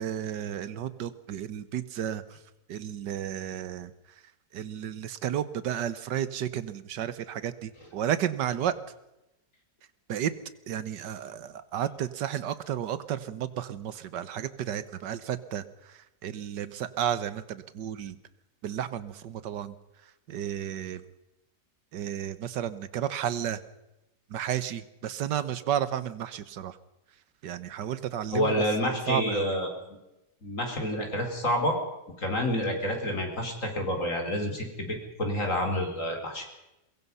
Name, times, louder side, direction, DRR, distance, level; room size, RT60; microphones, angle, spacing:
voice 1, 0.0-2.2 2.7-3.9 4.5-8.8 10.1-10.3 10.7-18.2 18.6-19.7 20.3-21.0 21.9-23.6 24.3-26.8 27.4-28.5 28.8-29.6, right 10 dB, 90° right, 15 dB, 1.7 m, -32 dB
voice 2, 28.3-29.7 30.4-31.8 32.2-36.4, left 1 dB, 45° left, 3 dB, 4.3 m, -28 dB
22.5 x 22.5 x 5.5 m, 0.95 s
omnidirectional pair, 1.8 m